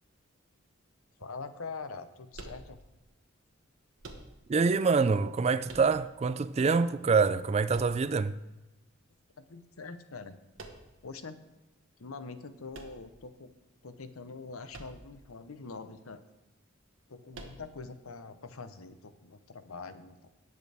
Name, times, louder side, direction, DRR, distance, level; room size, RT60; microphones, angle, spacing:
voice 1, 1.2-2.8 9.4-10.4 11.0-11.4 12.0-13.5 13.8-16.2 17.1-20.3, left 4 dB, 85° left, 0.8 m, -44 dB
sound 1, 2.3-3.1 4.0-4.7 5.7-6.4 7.7-8.5 10.6-11.1 12.7-13.6 14.7-15.3 15.5-15.6 17.3-18.0, right 2 dB, 65° right, 1.4 m, -48 dB
voice 2, 4.5-8.4, right 4 dB, 30° right, 0.3 m, -26 dB
18.0 x 6.8 x 3.4 m
head